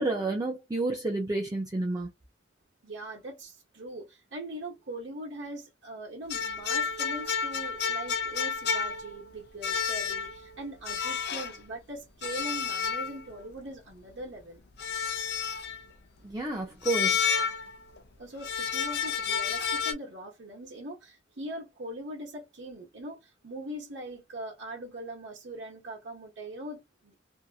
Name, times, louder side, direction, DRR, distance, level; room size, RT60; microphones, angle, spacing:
voice 1, 0.0-2.1 16.2-17.2, right 2 dB, 20° right, 0.5 m, -30 dB
voice 2, 2.8-14.6 18.2-27.1, right 1 dB, 70° right, 1.0 m, -41 dB
sound 1, 6.3-9.3 9.6-10.5 10.9-11.6 12.2-13.4 14.8-15.8 16.8-18.0 18.4-19.9, left 6 dB, 60° left, 0.5 m, -30 dB
2.7 x 2.5 x 2.3 m
head